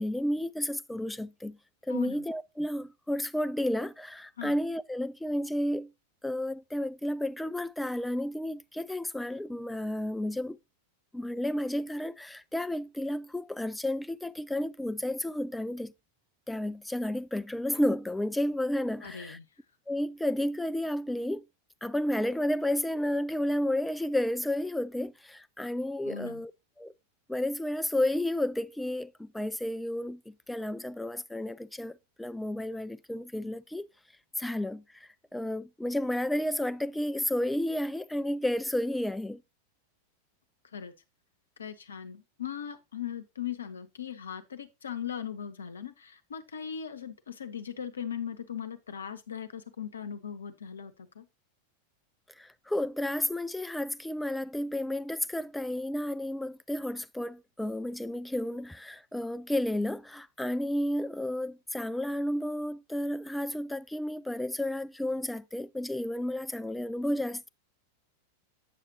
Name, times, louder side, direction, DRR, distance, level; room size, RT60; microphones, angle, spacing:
voice 1, 0.0-1.6 1.8-5.9 6.2-10.6 11.1-15.9 16.5-19.4 19.9-21.4 21.8-26.5 26.8-26.9 27.3-33.9 34.4-39.4 52.4-67.5, left 1 dB, 5° left, 0.3 m, -32 dB
voice 2, 1.9-2.2 4.4-4.6 19.0-19.5 26.0-26.4 40.7-40.9 41.6-51.3, left 8 dB, 70° left, 0.8 m, -39 dB
8.4 x 6.5 x 2.8 m
figure-of-eight pair, 90°, 0 cm